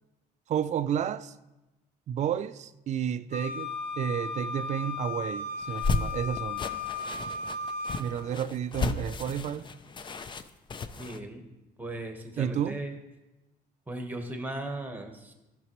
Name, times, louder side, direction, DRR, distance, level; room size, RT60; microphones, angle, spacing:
voice 1, 0.5-1.3 2.1-6.6 8.0-9.7 12.4-12.8, right 9 dB, 45° right, 0.4 m, -31 dB
Wind instrument woodwind instrument, 3.3-8.0, left 4 dB, 45° left, 1.8 m, -35 dB
sound 1, 5.6-11.2, left 4 dB, 30° left, 0.5 m, -34 dB
voice 2, 11.0-11.4 11.8-13.0 13.9-15.3, right 1 dB, 10° right, 1.2 m, -37 dB
14.0 x 6.0 x 3.1 m
cardioid pair, 110°, 17 cm